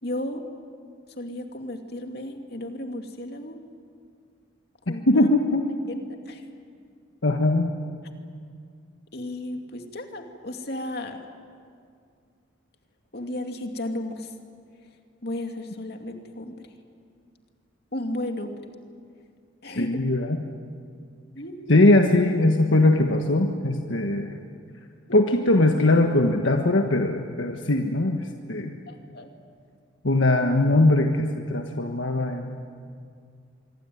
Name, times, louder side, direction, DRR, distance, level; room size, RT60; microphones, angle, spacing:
voice 1, 0.0-0.4 1.2-3.6 4.9-5.3 5.9-6.5 9.1-11.2 13.1-14.3 15.2-16.5 17.9-18.6 19.6-20.0 21.3-21.8 28.9-29.3, left 1 dB, 55° left, 4 dB, 2.5 m, -34 dB
voice 2, 4.9-5.6 7.2-7.7 19.7-20.4 21.7-24.4 25.1-28.7 30.0-32.6, left 2 dB, 75° left, 3 dB, 1.4 m, -21 dB
26.0 x 24.0 x 9.4 m, 2.3 s
head